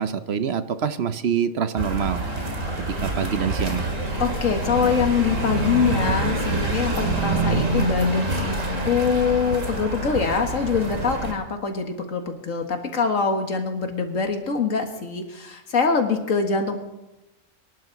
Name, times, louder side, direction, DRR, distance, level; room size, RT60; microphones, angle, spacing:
voice 1, 0.0-2.2 2.9-3.9 7.3-7.8, right 8 dB, 60° right, 12 dB, 0.9 m, -26 dB
sound 1, 1.8-11.3, right 1 dB, 80° right, 2.7 m, -26 dB
voice 2, 4.2-8.6 8.8-16.8, left 5 dB, 90° left, 5 dB, 2.1 m, -24 dB
24.0 x 11.5 x 4.0 m, 0.98 s
omnidirectional pair, 1.3 m